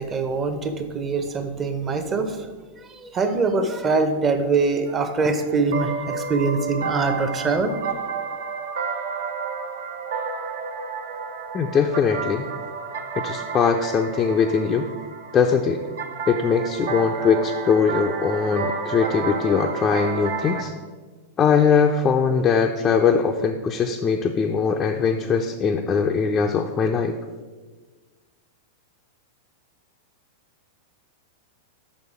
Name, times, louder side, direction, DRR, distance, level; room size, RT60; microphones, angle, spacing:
voice 1, 0.0-2.5 2.9-7.8, right 4 dB, 25° right, 8 dB, 0.8 m, -23 dB
sound 1, 4.9-20.6, right 5 dB, 60° right, 0.8 m, -31 dB
voice 2, 11.5-12.5 13.2-14.9 15.3-15.8 16.3-20.7 21.4-27.1, left 6 dB, 25° left, 2 dB, 0.4 m, -21 dB
6.3 x 5.3 x 4.8 m, 1.4 s
figure-of-eight pair, 95°, 0 cm